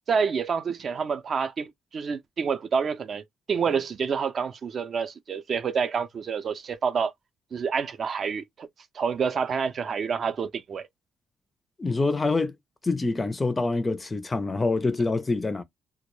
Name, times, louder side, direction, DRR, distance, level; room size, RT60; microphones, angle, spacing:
voice 1, 0.1-7.1 7.5-8.7 8.9-10.9, right 6 dB, 50° right, 0.4 m, -28 dB
voice 2, 11.8-12.5 12.8-15.6, left 3 dB, 25° left, 0.4 m, -26 dB
2.2 x 2.1 x 3.0 m
cardioid pair, 90°, 0 cm